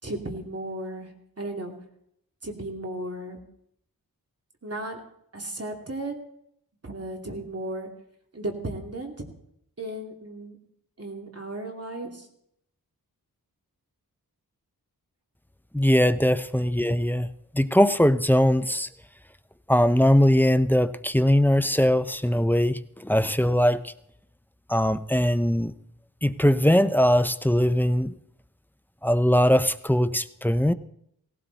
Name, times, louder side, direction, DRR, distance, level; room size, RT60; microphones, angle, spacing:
voice 1, 0.0-1.7 2.4-3.4 4.6-5.0 5.3-6.2 6.8-7.9 8.3-9.3 9.8-10.6 11.0-12.3, right 1 dB, 40° right, 2 dB, 2.8 m, -35 dB
voice 2, 15.7-18.9 19.7-23.9 24.7-25.7 26.2-28.1 29.0-30.7, equal, 5° left, 12 dB, 0.6 m, -21 dB
17.5 x 16.5 x 4.1 m, 0.73 s
wide cardioid pair, 65°, 37 cm